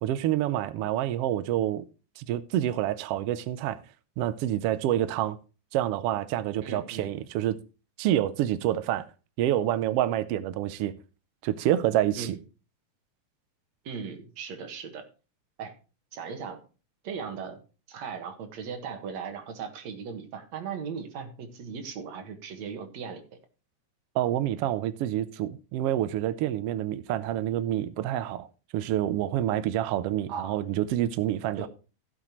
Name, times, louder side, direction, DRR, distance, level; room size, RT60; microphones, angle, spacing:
voice 1, 0.0-1.8 2.2-3.8 4.2-5.4 5.7-7.6 8.0-9.1 9.4-10.9 11.4-12.4 24.1-28.5 28.7-31.7, right 12 dB, 80° right, 1.3 m, -27 dB
voice 2, 6.6-7.1 12.2-12.4 13.8-15.1 15.6-15.7 16.1-16.6 17.0-17.6 17.9-23.4 30.3-30.6 31.6-31.7, right 6 dB, 65° right, 2.8 m, -38 dB
16.0 x 7.5 x 3.1 m
omnidirectional pair, 3.5 m